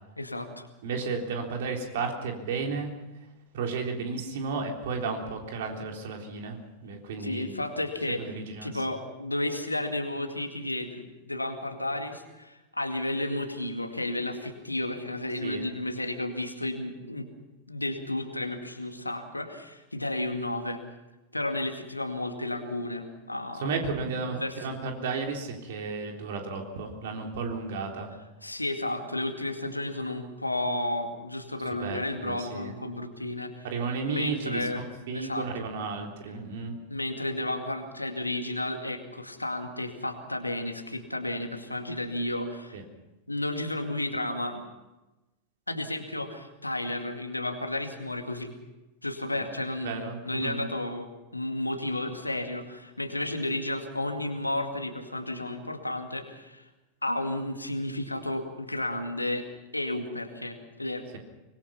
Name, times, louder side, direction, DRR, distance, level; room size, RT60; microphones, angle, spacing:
voice 1, 0.2-0.7 7.2-8.2 8.6-17.3 17.7-20.8 21.3-23.7 24.0-24.5 28.4-33.7 34.1-34.8 35.1-35.5 36.9-42.8 43.3-44.6 45.7-48.5 49.0-56.6 57.0-59.5 59.7-61.0, left 1 dB, 85° left, 6 dB, 2.2 m, -32 dB
voice 2, 0.8-2.9 3.5-7.6 8.1-8.8 15.4-15.7 23.5-28.1 31.8-32.8 33.6-36.7 42.7-42.8 49.4-49.5 49.8-50.6, right 4 dB, 55° right, 2 dB, 3.7 m, -33 dB
24.5 x 21.0 x 5.8 m, 1.1 s
figure-of-eight pair, 90°, 0 cm